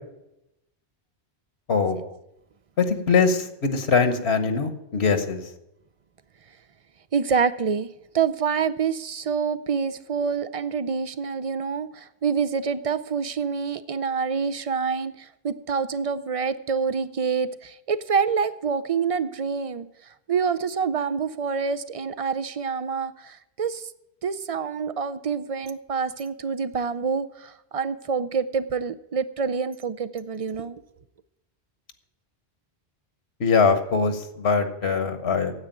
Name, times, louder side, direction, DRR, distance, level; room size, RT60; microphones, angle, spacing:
voice 1, 1.7-2.0 2.8-5.4 33.4-35.5, left 5 dB, 70° left, 9 dB, 1.3 m, -22 dB
voice 2, 7.1-7.9 8.1-23.9 24.2-30.8, right 6 dB, 45° right, 14 dB, 0.5 m, -27 dB
9.7 x 8.2 x 9.0 m, 0.87 s
omnidirectional pair, 1.1 m